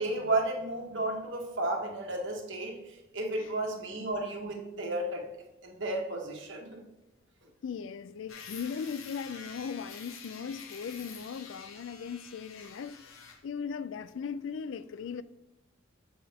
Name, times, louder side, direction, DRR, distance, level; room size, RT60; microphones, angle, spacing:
voice 1, 0.0-5.3 5.6-6.8, right 2 dB, 60° right, 1.5 m, -33 dB
voice 2, 7.6-13.0 13.4-15.2, left 6 dB, 65° left, 0.3 m, -38 dB
sound 1, 8.3-13.4, left 6 dB, 85° left, 1.0 m, -48 dB
7.5 x 5.6 x 3.5 m
head